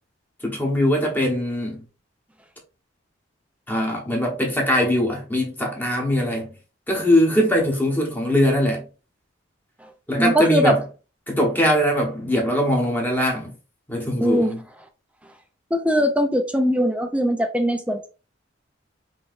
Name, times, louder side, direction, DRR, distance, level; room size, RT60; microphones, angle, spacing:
voice 1, 0.4-1.8 3.7-6.5 6.9-8.9 10.1-10.8 11.3-13.5 13.9-14.6, equal, 10° left, 1.2 m, -21 dB
voice 2, 10.2-10.7 14.2-14.5 15.7-18.1, equal, 5° right, 0.4 m, -20 dB
5.5 x 3.0 x 2.5 m
head